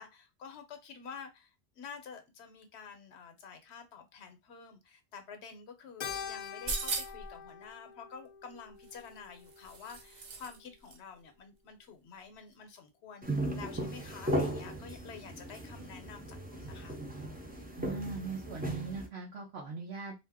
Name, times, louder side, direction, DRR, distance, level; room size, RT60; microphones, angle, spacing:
voice 1, 0.0-1.5 1.8-17.0, left 6 dB, 75° left, 0.9 m, -49 dB
Keyboard (musical), 6.0-10.6, left 7 dB, 55° left, 0.5 m, -45 dB
sound 1, 6.4-7.3 8.8-10.6 10.9-11.0, right 3 dB, 50° right, 0.6 m, -38 dB
sound 2, 13.2-19.1, right 1 dB, 15° right, 0.3 m, -37 dB
voice 2, 17.8-20.1, right 4 dB, 75° right, 1.0 m, -40 dB
2.6 x 2.1 x 3.4 m
omnidirectional pair, 1.1 m